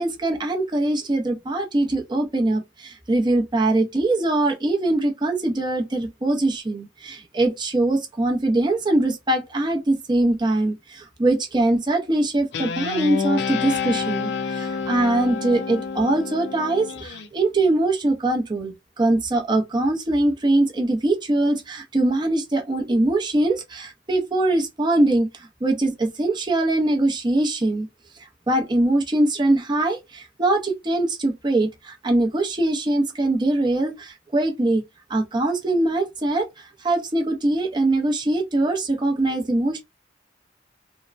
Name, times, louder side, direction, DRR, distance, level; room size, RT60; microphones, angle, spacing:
voice 1, 0.0-27.9 28.5-34.8 35.1-36.5 36.8-39.8, right 2 dB, 25° right, 0.6 m, -22 dB
Guitar, 12.5-17.3, left 5 dB, 65° left, 0.5 m, -28 dB
3.4 x 2.1 x 2.5 m
head